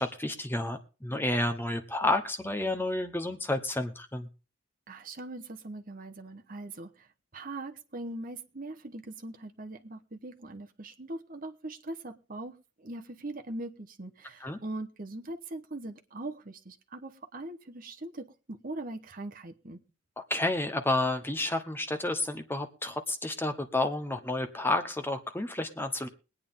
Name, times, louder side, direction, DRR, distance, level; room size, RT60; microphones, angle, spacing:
voice 1, 0.0-4.3 14.4-14.6 20.3-26.1, left 2 dB, 10° left, 0.9 m, -30 dB
voice 2, 4.9-7.1 7.3-19.8, right 2 dB, 40° right, 1.0 m, -41 dB
22.0 x 8.9 x 3.7 m
head